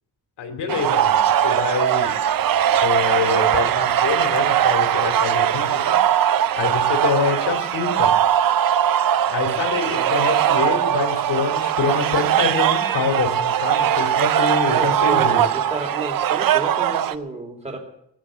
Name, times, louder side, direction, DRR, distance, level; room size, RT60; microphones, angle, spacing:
voice 1, 0.4-2.1 2.8-6.0 6.5-8.1 9.3-15.4, left 5 dB, 80° left, 7 dB, 2.6 m, -26 dB
sound 1, 0.7-17.1, right 10 dB, 55° right, 0.6 m, -20 dB
voice 2, 14.7-17.8, right 2 dB, 15° right, 3 dB, 2.5 m, -31 dB
20.0 x 7.7 x 7.4 m, 0.78 s
cardioid pair, 130°, 40 cm